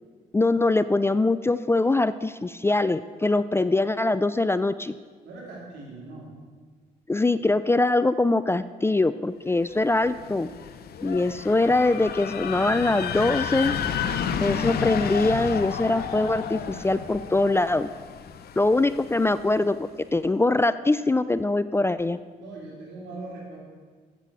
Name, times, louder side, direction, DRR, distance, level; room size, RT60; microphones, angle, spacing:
voice 1, 0.3-4.9 7.1-10.5 11.0-13.7 14.4-17.9 18.6-22.2, left 2 dB, 15° left, 14 dB, 0.3 m, -23 dB
voice 2, 5.2-6.3 22.0-23.6, right 2 dB, 80° right, -3 dB, 2.9 m, -41 dB
sound 1, 9.8-19.6, left 7 dB, 65° left, 0.7 m, -32 dB
8.3 x 7.5 x 6.1 m, 1.5 s
supercardioid pair, 55°, 18 cm